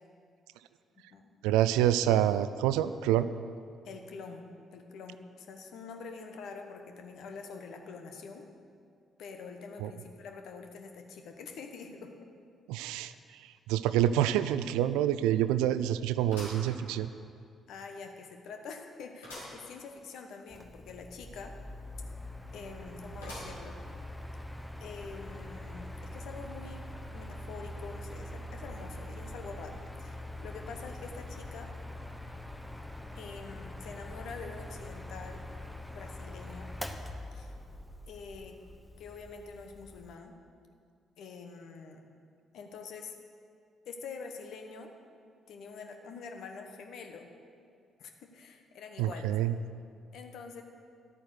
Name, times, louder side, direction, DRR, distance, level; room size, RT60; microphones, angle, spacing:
voice 1, 1.4-3.3 9.8-9.9 12.7-13.1 13.7-17.1 49.0-49.6, right 11 dB, 70° right, 13 dB, 0.4 m, -27 dB
voice 2, 3.8-8.4 9.2-12.3 12.9-13.1 17.7-21.5 22.5-23.8 24.8-26.8 27.1-29.7 30.0-31.7 33.1-35.4 35.9-36.7 37.3-37.6 38.1-38.6 39.0-40.3 41.2-42.0 42.5-43.2 43.8-44.9 45.5-47.3 48.0-49.4 50.1-50.6, left 5 dB, 60° left, 4 dB, 1.2 m, -45 dB
sound 1, 14.1-14.2 14.6-14.7 16.3-17.4 17.9-18.0 19.2-19.6 20.1-20.2 20.3-20.4 23.2-23.8 24.4-24.5 25.5-25.6, left 1 dB, 80° left, 3.2 m, -45 dB
Mechanical fan, 20.5-40.2, left 1 dB, 5° left, 1.0 m, -43 dB
11.5 x 8.8 x 6.5 m, 2.3 s
figure-of-eight pair, 40°, 0 cm